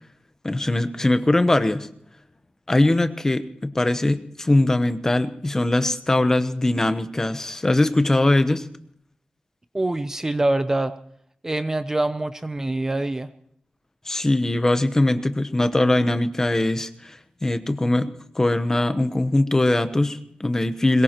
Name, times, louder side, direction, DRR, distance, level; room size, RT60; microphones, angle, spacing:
voice 1, 0.4-1.9 2.7-8.7 14.1-21.0, left 2 dB, 20° left, 10 dB, 0.9 m, -21 dB
voice 2, 9.7-10.9 11.4-13.3, right 2 dB, 15° right, 10 dB, 0.6 m, -24 dB
22.0 x 21.0 x 3.0 m, 0.67 s
wide cardioid pair, 175°, 3 cm